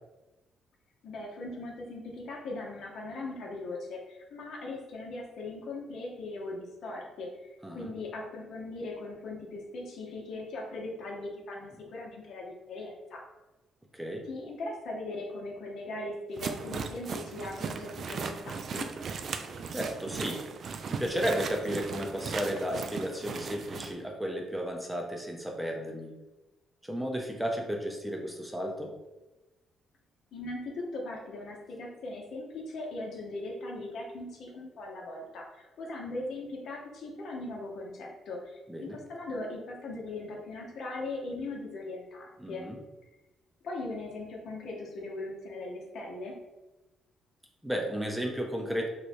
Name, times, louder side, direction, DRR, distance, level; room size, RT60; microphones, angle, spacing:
voice 1, 1.0-7.3 7.7-13.2 14.2-18.9 30.3-42.6 43.6-46.4, left 2 dB, 70° left, -1 dB, 0.8 m, -39 dB
voice 2, 13.9-14.2 19.7-20.4 20.9-26.1 26.8-28.9 38.7-39.0 42.4-42.8 47.6-48.9, equal, 5° right, 1 dB, 0.6 m, -33 dB
sound 1, 16.4-23.9, right 5 dB, 55° right, 0.3 m, -37 dB
3.1 x 2.2 x 4.2 m, 1.0 s
cardioid pair, 90°, 0 cm